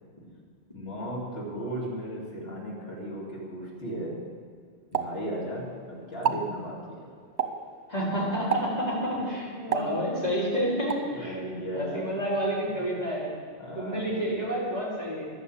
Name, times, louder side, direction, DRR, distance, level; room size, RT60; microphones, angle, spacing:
voice 1, 0.7-4.3 4.9-7.1 9.2-10.4 11.1-12.1 12.7-12.8 13.6-14.1, right 1 dB, 70° left, -4 dB, 2.9 m, -36 dB
Explosion, 4.9-5.8 6.1-6.5 7.4-7.8 8.5-8.9 9.7-10.4 10.9-11.1, right 6 dB, 85° right, 1.3 m, -30 dB
voice 2, 7.9-11.3 11.7-13.4 13.7-15.3, equal, 40° left, -7 dB, 4.5 m, -29 dB
11.5 x 8.3 x 8.7 m, 2.1 s
omnidirectional pair, 1.1 m